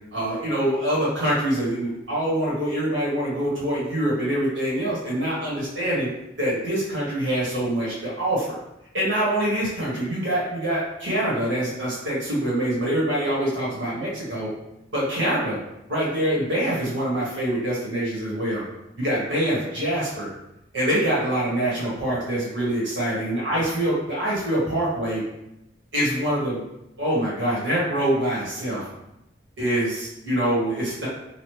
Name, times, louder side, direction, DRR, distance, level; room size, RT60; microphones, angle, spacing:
voice 1, 0.1-6.1 6.4-8.6 8.9-14.5 14.9-15.6 15.9-18.6 19.0-20.3 20.7-25.2 25.9-26.6 27.0-28.8 29.6-31.1, right 1 dB, 80° right, -7 dB, 1.5 m, -25 dB
3.1 x 2.4 x 3.2 m, 0.88 s
head